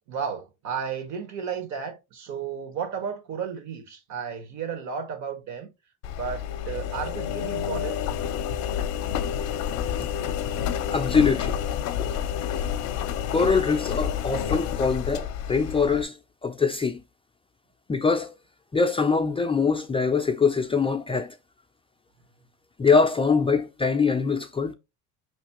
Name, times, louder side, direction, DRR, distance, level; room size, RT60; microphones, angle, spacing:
voice 1, 0.1-5.7 6.1-8.0, right 7 dB, 60° right, 1.5 m, -33 dB
Engine, 6.0-16.0, left 9 dB, 55° left, 0.6 m, -29 dB
voice 2, 10.9-11.5 13.3-16.1 16.4-17.0 17.9-18.3 18.7-21.3 22.8-24.7, left 5 dB, 15° left, 0.4 m, -23 dB
5.4 x 3.2 x 2.9 m
supercardioid pair, 100°, 32 cm